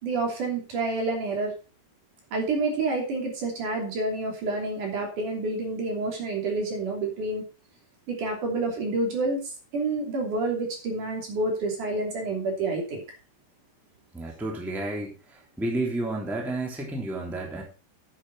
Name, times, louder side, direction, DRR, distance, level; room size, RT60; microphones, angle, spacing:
voice 1, 0.0-1.5 2.3-7.4 8.1-9.4 9.7-13.0, right 3 dB, 55° right, 0 dB, 4.4 m, -28 dB
voice 2, 14.1-17.6, right 2 dB, ahead, -1 dB, 2.4 m, -31 dB
9.9 x 8.9 x 4.8 m, 0.34 s
omnidirectional pair, 4.6 m